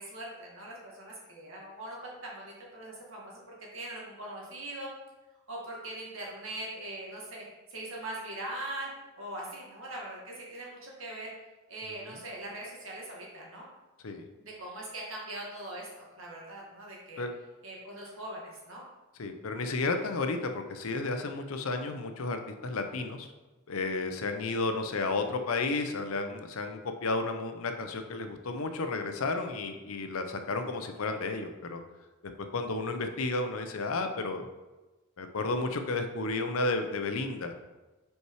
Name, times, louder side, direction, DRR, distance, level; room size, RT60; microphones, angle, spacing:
voice 1, 0.0-4.9 5.5-7.4 7.7-8.9 9.2-11.3 11.7-13.7 14.4-17.2 17.6-18.8, right 1 dB, 65° right, -3 dB, 1.9 m, -41 dB
voice 2, 19.2-23.3 23.7-31.8 32.5-34.4 35.2-37.5, left 3 dB, 80° left, 6 dB, 0.7 m, -32 dB
5.5 x 4.6 x 4.7 m, 1.1 s
head